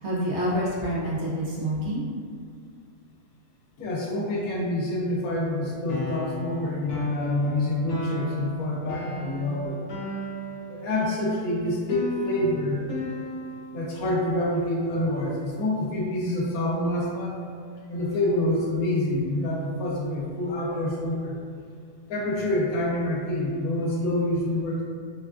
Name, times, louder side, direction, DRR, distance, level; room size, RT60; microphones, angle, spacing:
voice 1, 0.0-2.0, equal, 60° right, -7 dB, 0.9 m, -27 dB
voice 2, 3.8-9.8 10.7-12.9 13.7-17.4 17.9-21.4 22.1-24.8, left 1 dB, 85° left, -3 dB, 1.1 m, -27 dB
sound 1, 5.9-13.8, left 2 dB, 65° left, 0.9 m, -34 dB
3.5 x 2.3 x 2.3 m, 2.2 s
omnidirectional pair, 1.5 m